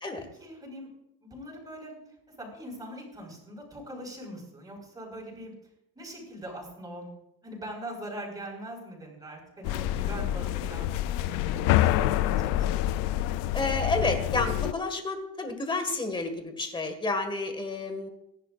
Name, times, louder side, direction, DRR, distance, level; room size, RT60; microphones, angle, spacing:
voice 1, 0.4-0.9 1.2-2.0 2.4-5.5 6.0-7.1 7.4-12.7, right 1 dB, 10° right, -1 dB, 5.2 m, -42 dB
sound 1, 9.6-14.7, left 13 dB, 80° left, 0.6 m, -27 dB
voice 2, 13.5-18.1, left 3 dB, 15° left, 6 dB, 1.9 m, -30 dB
27.0 x 11.0 x 2.5 m, 0.83 s
cardioid pair, 165°, 32 cm